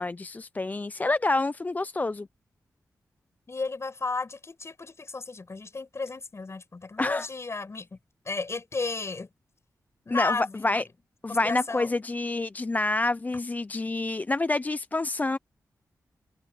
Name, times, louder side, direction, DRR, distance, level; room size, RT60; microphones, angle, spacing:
voice 1, 0.0-2.3 7.0-7.3 10.1-10.8 11.2-15.4, left 2 dB, 25° left, 0.4 m, -27 dB
voice 2, 3.5-8.0 8.2-9.3 10.0-10.8 11.3-11.9, left 3 dB, 45° left, 6.8 m, -33 dB
cardioid pair, 65°, 7 cm